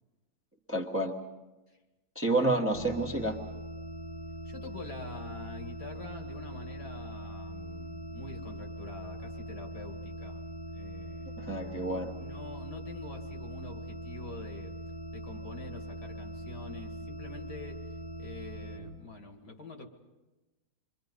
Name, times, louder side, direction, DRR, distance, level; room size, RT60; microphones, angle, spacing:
voice 1, 0.7-1.1 2.1-3.4 11.4-12.1, right 2 dB, 10° right, 1 dB, 1.3 m, -29 dB
voice 2, 2.3-2.6 4.4-10.4 10.7-11.4 12.2-14.7 15.1-17.8 18.2-19.9, left 3 dB, 65° left, 3 dB, 2.7 m, -46 dB
sound 1, 2.7-18.8, equal, 85° left, 4.7 m, -41 dB
28.0 x 23.5 x 5.4 m, 1.1 s
omnidirectional pair, 1.8 m